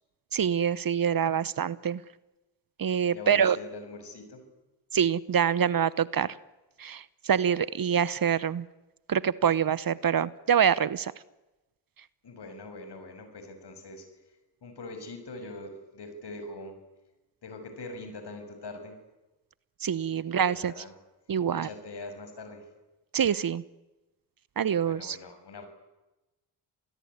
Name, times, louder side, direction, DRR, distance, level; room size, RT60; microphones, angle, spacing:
voice 1, 0.3-2.0 2.8-3.6 4.9-6.3 6.8-8.7 9.1-11.1 19.8-20.7 21.3-21.7 23.1-23.6 24.6-25.2, right 8 dB, 45° right, 19 dB, 0.9 m, -25 dB
voice 2, 3.1-4.4 12.2-14.1 14.6-16.8 17.4-19.0 20.2-20.9 21.5-22.6 24.8-25.7, left 2 dB, 60° left, 8 dB, 6.4 m, -42 dB
28.0 x 19.0 x 9.7 m, 1.1 s
supercardioid pair, 55°, 47 cm